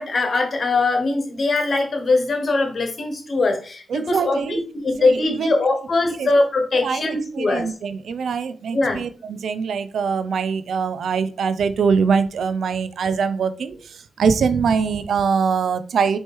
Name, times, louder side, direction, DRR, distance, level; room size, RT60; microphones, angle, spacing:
voice 1, 0.0-7.7 8.7-9.0, left 3 dB, 55° left, 4 dB, 1.3 m, -21 dB
voice 2, 3.9-4.6 5.0-5.5 6.1-6.3 6.8-13.8 14.2-16.2, right 6 dB, 70° right, 12 dB, 0.4 m, -23 dB
4.2 x 3.0 x 3.5 m, 0.40 s
supercardioid pair, 45°, 0 cm